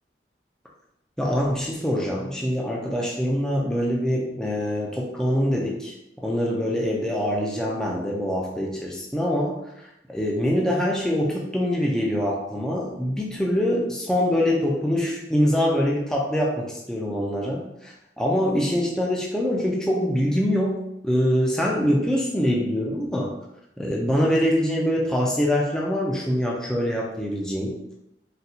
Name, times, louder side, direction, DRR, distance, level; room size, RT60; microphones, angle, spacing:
voice 1, 1.2-23.4 23.8-27.8, equal, 5° left, -3 dB, 0.4 m, -24 dB
4.0 x 2.2 x 2.7 m, 0.83 s
head